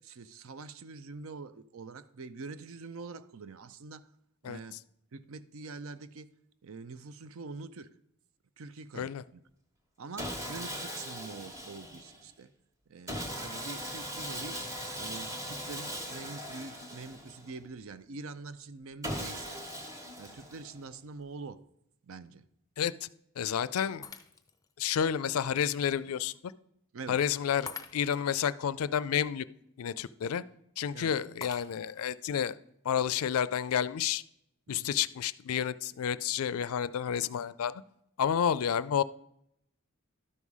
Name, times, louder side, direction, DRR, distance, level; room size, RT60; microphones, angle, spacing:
voice 1, 0.0-4.1 4.4-4.8 5.1-6.3 6.6-7.9 8.6-9.4 10.0-12.5 12.9-14.6 15.0-19.6 20.2-21.6 22.0-22.5 26.9-27.2 30.9-31.2 34.7-34.9, right 4 dB, 70° right, 0.5 m, -45 dB
Sawing, 10.2-12.2 13.1-17.6 19.0-20.8, equal, 15° right, 1.1 m, -39 dB
voice 2, 22.8-23.1 23.4-24.1 24.8-26.5 27.1-29.4 29.8-30.4 30.8-32.6 32.8-34.2 34.7-37.7 38.2-39.0, left 8 dB, 80° left, 0.4 m, -30 dB
Shatter, 24.0-24.7 25.3-25.4 27.7-28.4 31.4-32.1, left 5 dB, 15° left, 0.4 m, -45 dB
12.0 x 5.5 x 4.8 m
head